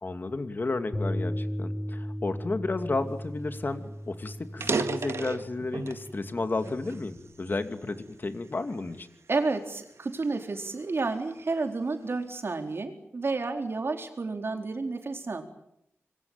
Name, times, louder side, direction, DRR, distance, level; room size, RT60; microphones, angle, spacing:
voice 1, 0.0-9.1, left 3 dB, 45° left, 8 dB, 2.6 m, -32 dB
Bass guitar, 0.9-7.2, equal, 25° left, 5.1 m, -36 dB
sound 1, 3.4-3.5 3.8-4.0 4.5-6.1 6.6-7.9 8.5-8.7 9.4-11.4, right 4 dB, 70° right, 2.0 m, -34 dB
voice 2, 9.3-15.4, right 3 dB, 55° right, 5 dB, 4.2 m, -31 dB
26.0 x 23.0 x 9.0 m, 0.77 s
wide cardioid pair, 90°, 5 cm